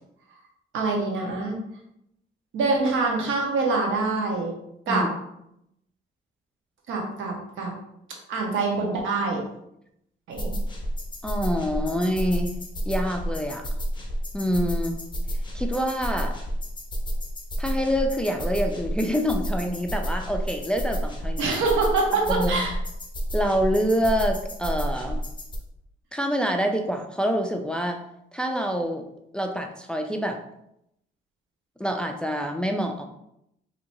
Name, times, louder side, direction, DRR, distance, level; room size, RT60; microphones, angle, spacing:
voice 1, 0.7-1.6 2.5-4.5 4.9-5.1 6.9-7.7 8.3-9.4 10.3-10.5 21.4-22.7, right 3 dB, 80° right, 0 dB, 1.0 m, -25 dB
sound 1, 10.4-25.6, equal, 25° left, 0.8 m, -30 dB
voice 2, 11.2-12.6 12.9-13.7 14.3-15.0 15.5-16.4 17.6-21.6 22.3-22.7 23.3-25.2 26.1-28.0 28.3-29.1 29.3-30.4 31.8-33.0, equal, 5° left, 3 dB, 0.4 m, -26 dB
4.3 x 2.8 x 2.7 m, 0.79 s
cardioid pair, 90°, 20 cm